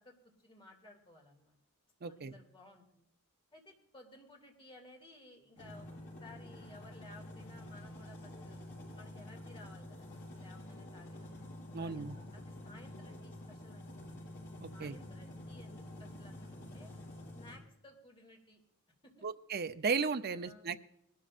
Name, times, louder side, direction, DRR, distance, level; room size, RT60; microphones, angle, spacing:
voice 1, 0.0-1.6 2.1-3.1 3.5-5.9 6.2-8.6 8.9-11.3 11.8-14.0 14.7-16.9 17.3-18.6 19.0-19.3 20.3-20.8, left 2 dB, 25° left, 1 dB, 2.4 m, -57 dB
voice 2, 2.0-2.3 11.7-12.1 14.6-15.0 19.2-20.8, right 5 dB, 45° right, 9 dB, 0.6 m, -35 dB
sound 1, 5.6-17.6, left 1 dB, 50° left, 5.7 m, -48 dB
20.5 x 12.5 x 2.5 m, 0.77 s
head